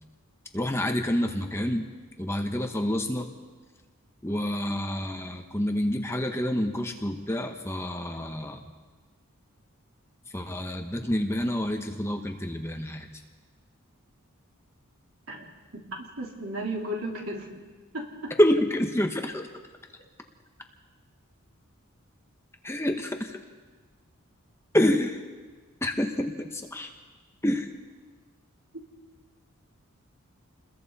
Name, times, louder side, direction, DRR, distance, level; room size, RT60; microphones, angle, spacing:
voice 1, 0.5-1.9 2.2-3.3 4.2-8.6 10.3-13.1 18.4-19.5 22.6-23.4 24.7-25.2 25.8-26.9 27.4-27.7, left 1 dB, 10° left, 4 dB, 1.1 m, -27 dB
voice 2, 15.7-17.5 17.9-18.3, right 1 dB, 65° right, -1 dB, 3.7 m, -34 dB
29.0 x 21.5 x 4.2 m, 1.4 s
head